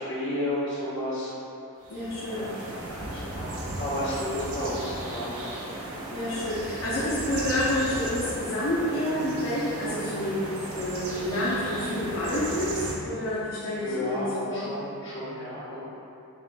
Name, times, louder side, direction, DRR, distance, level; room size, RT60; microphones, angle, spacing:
voice 1, 0.0-1.3 2.2-2.6 2.8-5.4 13.8-15.8, left 1 dB, 55° left, -9 dB, 1.1 m, -32 dB
sound 1, 1.8-13.0, right 1 dB, 80° right, 0.7 m, -36 dB
voice 2, 1.9-2.5 6.1-14.7, left 1 dB, 70° left, -9 dB, 0.7 m, -29 dB
Wind instrument woodwind instrument, 8.9-13.6, left 1 dB, 5° right, 0.6 m, -45 dB
7.5 x 2.5 x 2.2 m, 2.8 s
head